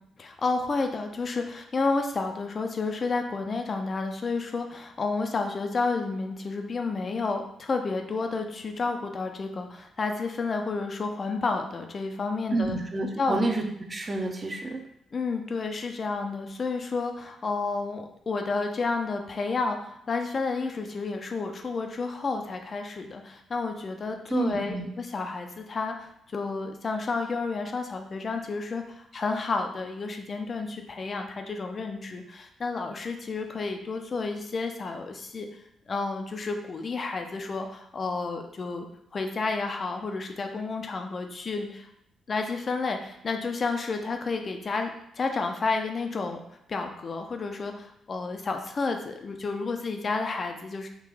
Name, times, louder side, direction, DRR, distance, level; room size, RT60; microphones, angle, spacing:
voice 1, 0.2-12.8 13.2-13.5 15.1-35.5 35.9-38.9 39.1-41.9 42.3-46.4 46.7-50.9, left 4 dB, 45° left, 4 dB, 0.4 m, -31 dB
voice 2, 12.5-14.8 24.3-24.9, right 2 dB, 30° right, 3 dB, 0.7 m, -29 dB
3.7 x 2.8 x 3.1 m, 0.76 s
figure-of-eight pair, 40°, 0 cm